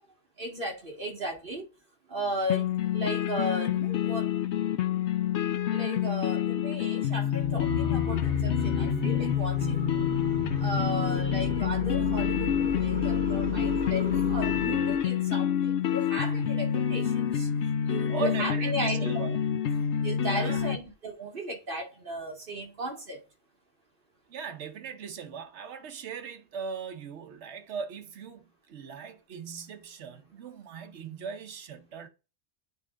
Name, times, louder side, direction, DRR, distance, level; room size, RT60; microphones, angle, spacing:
voice 1, 0.4-1.6 2.1-4.4 5.7-10.1 10.6-17.5 17.8-19.0 20.0-23.2, equal, 55° right, 2.2 m, -36 dB
sound 1, 2.5-20.8, left 9 dB, 85° left, 1.0 m, -28 dB
sound 2, 7.4-15.1, left 2 dB, 60° left, 1.6 m, -32 dB
voice 2, 18.1-19.4 20.3-20.7 24.3-32.1, right 5 dB, 85° right, 1.1 m, -38 dB
9.4 x 3.5 x 3.6 m
omnidirectional pair, 1.1 m